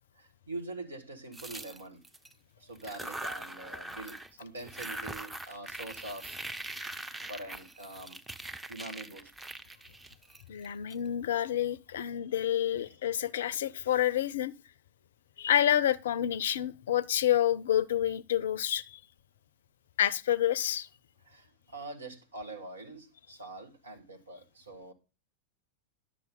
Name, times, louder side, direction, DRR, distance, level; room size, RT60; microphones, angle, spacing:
voice 1, 0.1-2.0 2.6-6.4 7.3-9.3 12.7-12.8 21.2-24.9, right 2 dB, 75° right, 1.8 m, -44 dB
sound 1, 1.3-2.3 2.8-4.3 4.6-10.9, right 2 dB, 10° right, 0.7 m, -42 dB
voice 2, 10.5-14.5 15.4-19.0 20.0-20.9, left 11 dB, 60° left, 0.5 m, -28 dB
11.0 x 7.2 x 3.8 m
figure-of-eight pair, 90°, 0 cm